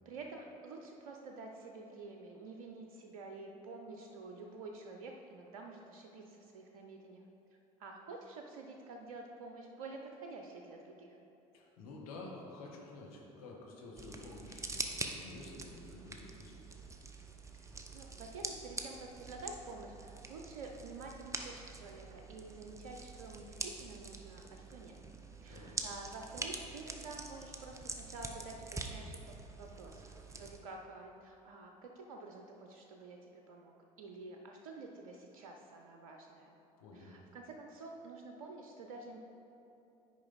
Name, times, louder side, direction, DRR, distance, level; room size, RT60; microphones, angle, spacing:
voice 1, 0.1-7.2 7.8-11.2 17.5-17.7 17.9-24.9 25.4-33.7 34.0-36.5 36.9-39.2, right 3 dB, 70° right, 2 dB, 0.6 m, -49 dB
voice 2, 11.5-16.6 25.5-25.7 36.8-37.1, left 2 dB, 70° left, -2 dB, 1.4 m, -50 dB
sound 1, 14.0-30.6, right 3 dB, 15° right, 0.8 m, -45 dB
9.4 x 5.2 x 4.0 m, 2.9 s
figure-of-eight pair, 60°, 19 cm